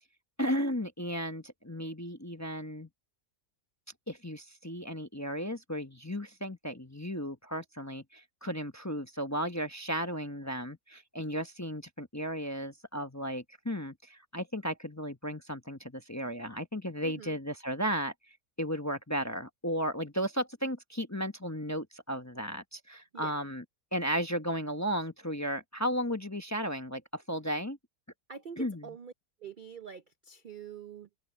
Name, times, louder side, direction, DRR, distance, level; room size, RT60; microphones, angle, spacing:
voice 1, 0.4-2.9 4.1-18.1 18.6-23.6 23.9-27.8 28.6-28.9, equal, 15° left, 0.8 m, -34 dB
voice 2, 17.0-17.4 23.1-23.3 28.3-29.1 29.4-31.2, right 7 dB, 50° right, 0.6 m, -45 dB
open air
omnidirectional pair, 1.6 m